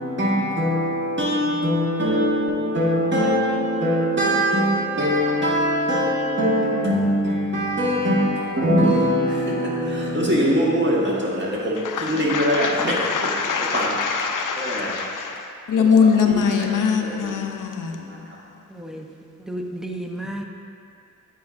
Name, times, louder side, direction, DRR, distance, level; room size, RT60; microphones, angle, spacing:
voice 1, 0.0-13.0 13.7-13.9 14.6-14.9 15.8-15.9 16.2-16.7 17.0-17.1 18.1-18.2, equal, 30° right, 1.5 m, -22 dB
voice 2, 11.8-18.9, left 6 dB, 60° left, 0.7 m, -23 dB
voice 3, 18.7-20.4, right 1 dB, ahead, 0.6 m, -33 dB
8.7 x 4.9 x 2.5 m
cardioid pair, 45°, 36 cm